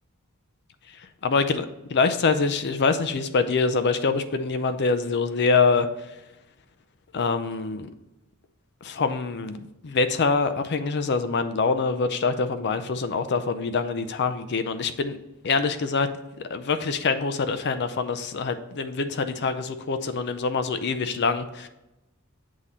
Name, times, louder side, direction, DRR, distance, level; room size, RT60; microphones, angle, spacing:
voice 1, 1.0-5.9 7.1-7.9 8.8-15.2 15.4-16.1 16.4-21.7, left 4 dB, 50° left, 10 dB, 0.5 m, -25 dB
8.3 x 3.7 x 4.2 m, 0.98 s
head